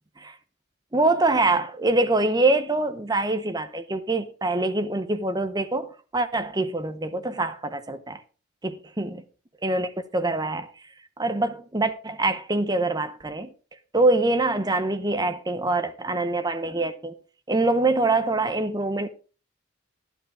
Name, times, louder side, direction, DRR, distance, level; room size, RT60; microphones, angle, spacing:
voice 1, 0.9-8.2 8.6-9.2 9.6-10.7 11.2-13.5 13.9-17.1 17.5-19.1, right 2 dB, 20° right, 0.9 m, -24 dB
12.0 x 11.0 x 3.6 m
head